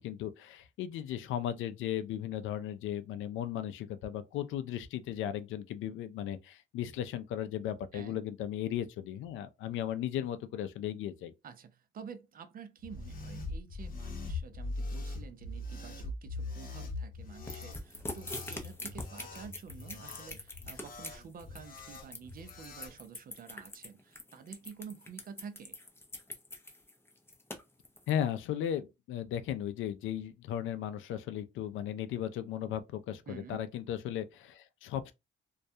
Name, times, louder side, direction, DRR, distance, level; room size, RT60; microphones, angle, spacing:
voice 1, 0.0-11.3 28.1-35.1, left 10 dB, 80° left, 0.4 m, -36 dB
voice 2, 11.4-25.8 33.3-33.7, right 6 dB, 45° right, 0.4 m, -49 dB
sound 1, 12.8-23.0, left 2 dB, 45° left, 0.8 m, -42 dB
sound 2, 17.5-28.1, left 2 dB, 10° left, 0.5 m, -43 dB
2.3 x 2.1 x 2.6 m
cardioid pair, 90°, 20 cm